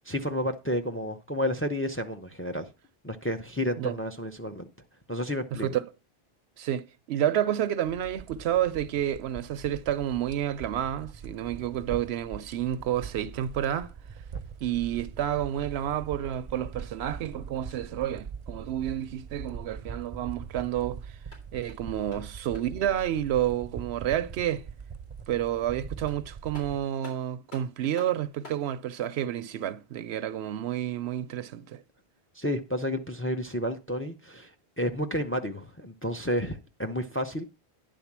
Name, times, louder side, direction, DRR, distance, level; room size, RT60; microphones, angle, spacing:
voice 1, 0.1-2.7 3.0-4.7 5.1-5.8 32.4-37.4, equal, 15° left, 0.5 m, -31 dB
voice 2, 5.5-5.8 6.6-13.9 14.6-21.0 21.5-24.6 25.3-31.8, right 11 dB, 85° right, 0.9 m, -30 dB
sound 1, 7.8-26.8, right 6 dB, 40° right, 0.5 m, -42 dB
sound 2, 16.8-18.1 21.1-23.3 25.6-25.7 26.1-28.7, left 1 dB, 85° left, 4.1 m, -51 dB
10.0 x 3.8 x 7.3 m
omnidirectional pair, 1.0 m